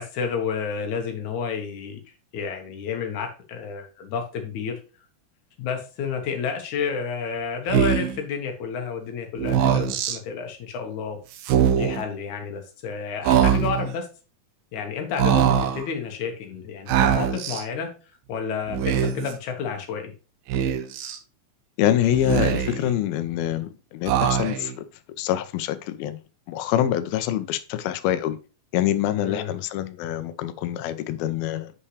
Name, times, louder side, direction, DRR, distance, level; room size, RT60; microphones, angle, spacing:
voice 1, 0.0-2.0 2.3-4.8 5.6-11.2 11.8-14.1 14.7-17.9 18.3-20.1 29.2-29.5, left 6 dB, 60° left, 2.5 m, -30 dB
Speech, 7.7-8.2 9.4-10.2 11.4-12.0 13.2-13.9 15.2-15.8 16.9-17.6 18.7-19.3 20.5-21.2 22.1-22.9 24.1-24.8, right 8 dB, 85° right, 2.5 m, -22 dB
voice 2, 21.8-24.9 25.2-26.2 26.5-28.4 28.7-31.7, left 11 dB, 85° left, 2.5 m, -25 dB
8.3 x 5.5 x 3.2 m
omnidirectional pair, 4.2 m